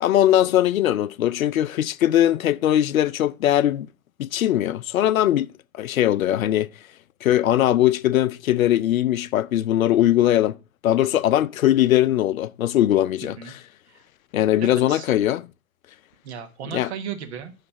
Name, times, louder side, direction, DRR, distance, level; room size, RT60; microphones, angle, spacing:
voice 1, 0.0-3.9 4.2-5.5 5.8-6.7 7.2-10.6 10.8-13.6 14.3-15.5 16.7-16.9, left 12 dB, 80° left, 0.5 m, -20 dB
voice 2, 13.2-13.5 13.9-14.0 14.6-15.1 16.2-17.5, right 8 dB, 55° right, 1.3 m, -35 dB
9.8 x 3.3 x 5.8 m
hypercardioid pair, 130°, 41 cm